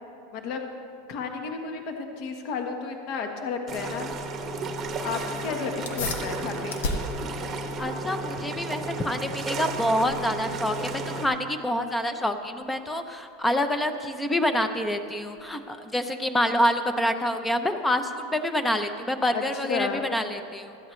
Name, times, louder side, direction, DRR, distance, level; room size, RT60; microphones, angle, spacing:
voice 1, 0.3-0.6 1.1-4.1 5.0-6.9 19.3-20.1, left 5 dB, 45° left, 4 dB, 1.2 m, -32 dB
sound 1, 3.7-11.3, right 3 dB, 20° right, 0.9 m, -33 dB
sound 2, 5.8-15.8, left 2 dB, 90° left, 1.5 m, -39 dB
voice 2, 7.8-20.8, left 1 dB, 5° left, 8 dB, 0.6 m, -27 dB
16.5 x 13.0 x 3.2 m, 2.7 s
supercardioid pair, 160°, 0 cm